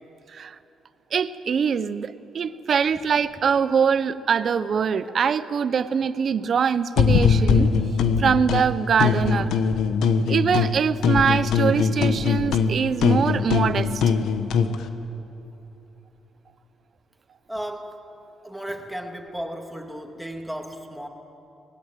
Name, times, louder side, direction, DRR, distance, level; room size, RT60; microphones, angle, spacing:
voice 1, 1.1-7.7 8.2-9.5 10.3-14.0, right 6 dB, 50° right, 14 dB, 0.9 m, -23 dB
sound 1, 7.0-8.6 9.0-10.8 11.0-14.7, left 6 dB, 80° left, 1.3 m, -21 dB
voice 2, 17.5-18.0 18.4-21.1, equal, ahead, 2 dB, 2.6 m, -34 dB
23.5 x 19.5 x 9.3 m, 2.9 s
cardioid pair, 90°, 0 cm